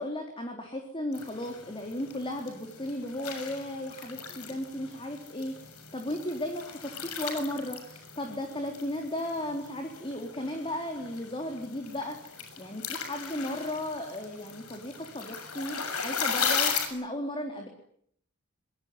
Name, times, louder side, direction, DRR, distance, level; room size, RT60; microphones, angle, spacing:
voice 1, 0.0-5.7 5.9-17.7, left 1 dB, 25° left, 3 dB, 3.9 m, -35 dB
sound 1, 1.1-16.9, left 6 dB, 80° left, 6.9 m, -37 dB
26.0 x 22.0 x 9.8 m, 0.67 s
head